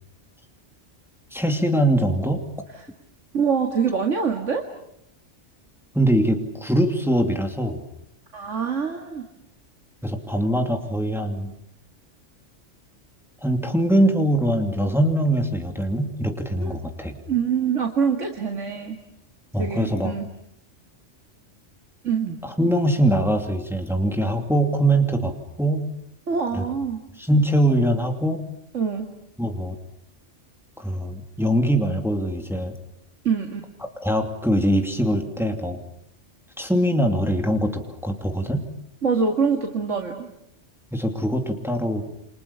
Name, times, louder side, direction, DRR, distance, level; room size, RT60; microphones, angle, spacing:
voice 1, 1.3-2.4 5.9-7.8 10.0-11.5 13.4-17.1 19.5-20.1 22.4-25.9 26.5-26.6 27.2-28.4 29.4-29.8 30.8-32.7 34.0-35.8 36.6-38.7 40.9-42.0, right 1 dB, ahead, 4 dB, 2.7 m, -22 dB
voice 2, 3.3-4.6 8.3-9.2 16.6-16.8 17.3-19.0 19.6-20.3 22.0-22.4 26.3-27.0 28.7-29.1 33.2-33.6 39.0-40.3, right 6 dB, 85° right, 3 dB, 2.5 m, -24 dB
29.0 x 26.0 x 7.1 m, 0.75 s
omnidirectional pair, 1.2 m